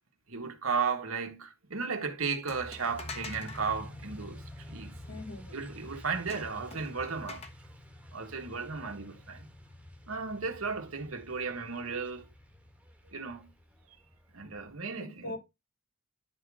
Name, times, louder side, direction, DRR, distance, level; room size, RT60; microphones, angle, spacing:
voice 1, 0.3-5.0 5.5-7.5 8.1-9.5 10.1-12.3 13.1-13.5 14.3-15.4, right 5 dB, 90° right, 1.9 m, -35 dB
sound 1, 2.5-3.6 6.3-7.5, left 3 dB, 30° left, 1.3 m, -45 dB
Truck, 2.5-14.8, equal, 5° right, 1.5 m, -51 dB
sound 2, 3.0-12.8, left 2 dB, 60° left, 1.6 m, -53 dB
voice 2, 5.1-5.7 15.0-15.4, left 1 dB, 80° left, 2.6 m, -41 dB
11.5 x 4.0 x 5.0 m
head